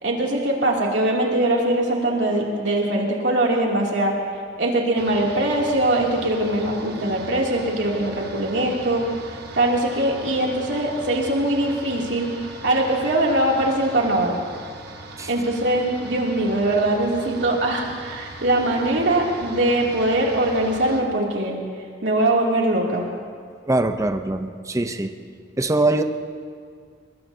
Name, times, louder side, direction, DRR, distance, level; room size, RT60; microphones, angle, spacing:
voice 1, 0.0-4.2 4.6-9.0 9.5-12.3 12.6-14.3 15.3-21.6 22.0-23.0, right 1 dB, 85° right, -2 dB, 2.8 m, -22 dB
sound 1, 5.0-21.0, right 2 dB, 65° right, 1.5 m, -40 dB
voice 2, 23.7-25.1 25.6-26.0, right 2 dB, 20° right, 7 dB, 0.7 m, -22 dB
22.0 x 21.5 x 2.8 m, 2.1 s
head